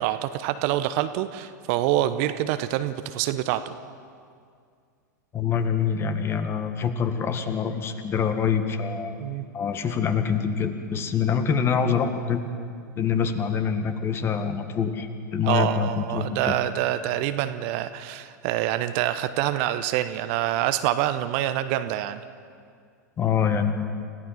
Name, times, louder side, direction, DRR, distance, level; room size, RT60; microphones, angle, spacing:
voice 1, 0.0-3.7 9.2-9.5 15.5-22.2, right 13 dB, 45° right, 11 dB, 0.8 m, -26 dB
voice 2, 5.3-9.2 9.5-12.5 13.0-16.6 23.2-23.8, left 7 dB, 25° left, 8 dB, 1.7 m, -25 dB
29.5 x 16.0 x 5.9 m, 2.2 s
figure-of-eight pair, 90°, 10 cm